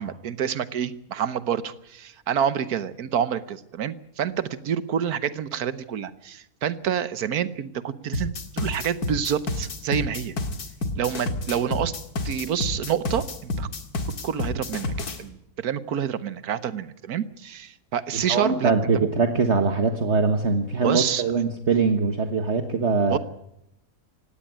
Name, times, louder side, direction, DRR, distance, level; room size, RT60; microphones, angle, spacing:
voice 1, 0.0-10.3 11.0-11.9 12.2-13.7 14.2-19.1 20.8-21.2 23.1-23.2, right 8 dB, 80° right, 15 dB, 1.5 m, -28 dB
sound 1, 8.1-15.2, left 2 dB, 85° left, 2.4 m, -29 dB
voice 2, 18.1-23.2, right 4 dB, 50° right, 7 dB, 1.6 m, -22 dB
17.5 x 17.5 x 9.0 m, 0.80 s
omnidirectional pair, 1.6 m